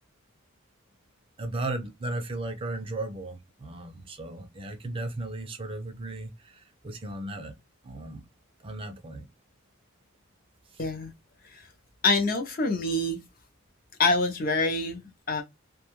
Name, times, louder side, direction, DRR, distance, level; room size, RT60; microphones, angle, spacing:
voice 1, 1.4-7.5 7.8-8.2 8.6-9.3 10.7-10.8, right 2 dB, 25° right, 0.4 m, -36 dB
voice 2, 10.8-11.1 11.5-11.7 12.0-13.2 14.0-15.4, left 3 dB, 40° left, 0.5 m, -26 dB
2.5 x 2.2 x 2.9 m
head